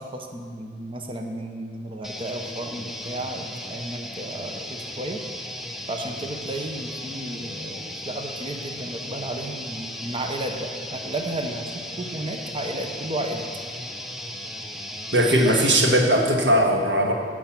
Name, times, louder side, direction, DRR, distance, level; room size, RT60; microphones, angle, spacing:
voice 1, 0.0-5.2 5.9-11.6 12.0-13.5 15.4-15.5, right 1 dB, 30° right, 3 dB, 0.9 m, -33 dB
sound 1, 2.0-15.7, left 1 dB, ahead, 0.6 m, -36 dB
voice 2, 15.1-17.1, right 1 dB, 70° right, 1 dB, 1.7 m, -19 dB
16.0 x 6.3 x 6.0 m, 2.2 s
head